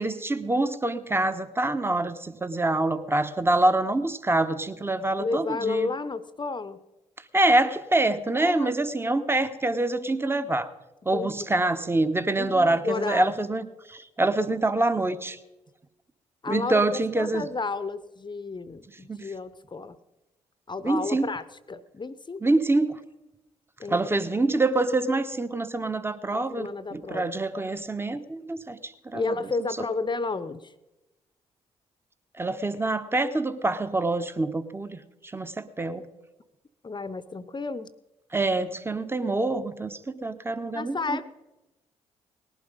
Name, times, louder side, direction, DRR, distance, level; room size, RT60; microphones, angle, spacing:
voice 1, 0.0-5.9 7.3-10.7 11.0-15.4 16.5-17.5 19.1-19.3 20.8-21.3 22.4-23.0 23.9-29.2 32.4-36.1 38.3-41.2, right 2 dB, 15° right, 12 dB, 1.1 m, -26 dB
voice 2, 5.2-6.8 8.4-8.7 11.1-11.6 12.4-13.4 16.4-20.0 20.7-22.4 23.8-24.1 26.3-27.3 29.1-30.7 36.8-37.9 40.7-41.2, left 4 dB, 30° left, 15 dB, 0.9 m, -32 dB
19.0 x 12.0 x 5.4 m, 1.0 s
figure-of-eight pair, 40°, 16 cm